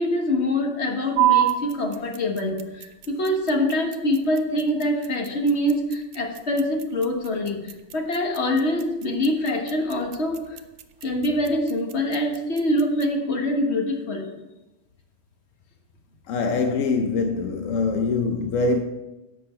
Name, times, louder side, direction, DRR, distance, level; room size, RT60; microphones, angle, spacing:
voice 1, 0.0-10.6 11.0-14.3, left 1 dB, 60° left, 1.8 m, -24 dB
sound 1, 1.2-13.2, right 13 dB, 70° right, 1.0 m, -30 dB
voice 2, 16.3-18.8, left 4 dB, 85° left, 1.1 m, -23 dB
12.0 x 7.8 x 4.4 m
omnidirectional pair, 1.3 m